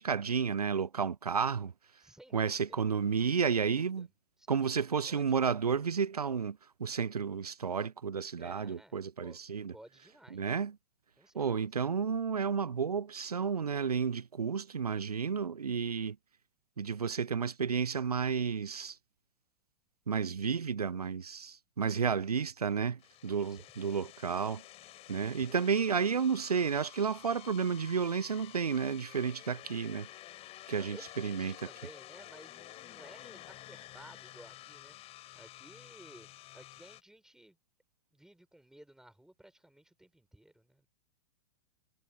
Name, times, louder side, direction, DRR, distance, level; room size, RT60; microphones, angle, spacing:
voice 1, 0.0-1.7 2.3-4.1 4.5-9.7 10.3-10.7 11.3-16.2 16.8-19.0 20.1-24.6 25.1-30.1 30.7-31.5, right 6 dB, 80° right, 0.7 m, -32 dB
voice 2, 2.0-2.8 3.3-4.1 4.4-5.4 8.3-9.0 9.2-9.4 9.7-10.6 11.2-11.7 23.4-24.1 25.1-25.6 30.7-37.6 38.1-40.9, right 1 dB, 5° right, 6.8 m, -57 dB
sound 1, 23.0-37.0, left 15 dB, 30° left, 7.3 m, -51 dB
figure-of-eight pair, 100°, 19 cm